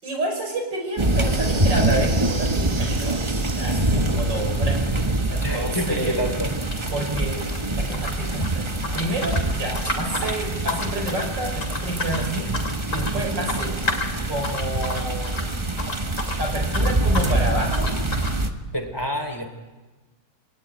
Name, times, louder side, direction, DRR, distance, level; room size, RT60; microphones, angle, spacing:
voice 1, 0.0-4.8 5.3-6.2 6.9-7.5 7.8-12.5 12.9-13.7 14.3-15.6 16.4-17.9, right 1 dB, 90° right, 3 dB, 5.6 m, -29 dB
sound 1, 0.9-5.0, right 3 dB, 40° right, 2.0 m, -38 dB
sound 2, 1.0-18.5, right 2 dB, 20° right, 1.2 m, -25 dB
sound 3, 4.6-4.8 5.0-7.6 7.9-16.4 16.7-17.4 17.7-18.4, left 2 dB, 45° left, 3.5 m, -32 dB
voice 2, 5.4-6.5 9.8-10.0 18.7-19.5, equal, 15° left, 6 dB, 3.2 m, -27 dB
28.5 x 20.0 x 9.4 m, 1.2 s
omnidirectional pair, 1.9 m